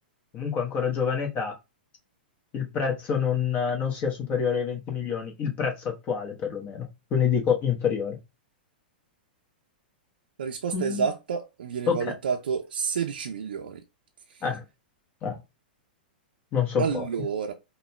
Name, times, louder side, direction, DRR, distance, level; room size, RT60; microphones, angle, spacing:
voice 1, 0.3-1.5 2.5-8.2 10.7-11.1 11.9-12.1 14.4-14.6 15.2-15.4 16.5-17.1, left 7 dB, 30° left, 1.1 m, -27 dB
voice 2, 10.4-13.8 16.8-17.5, right 6 dB, 70° right, 0.5 m, -29 dB
5.3 x 2.2 x 2.2 m
figure-of-eight pair, 105°, 5 cm